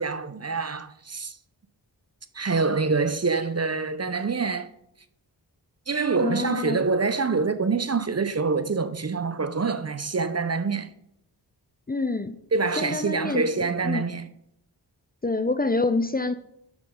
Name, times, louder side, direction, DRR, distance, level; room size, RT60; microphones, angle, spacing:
voice 1, 0.0-1.4 2.3-4.7 5.9-10.9 12.5-14.3, right 4 dB, 35° right, 0.7 m, -26 dB
voice 2, 6.2-6.8 11.9-12.4 12.8-13.4 13.8-14.0 15.2-16.3, left 3 dB, 20° left, 0.6 m, -26 dB
9.6 x 6.0 x 3.8 m
cardioid pair, 40°, 44 cm